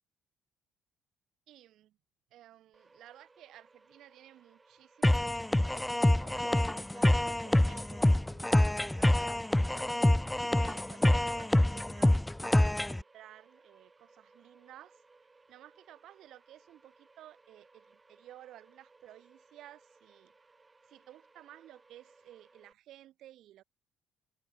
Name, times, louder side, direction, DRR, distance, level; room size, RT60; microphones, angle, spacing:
voice 1, 1.5-2.0 2.3-6.6 6.9-9.2 9.7-10.2 10.5-15.0 15.5-20.3 20.9-23.6, right 13 dB, 70° right, 6.7 m, -55 dB
sound 1, 2.7-22.7, right 3 dB, 20° right, 5.0 m, -63 dB
sound 2, 5.0-13.0, left 1 dB, 10° left, 0.5 m, -26 dB
open air
cardioid pair, 90°, 0 cm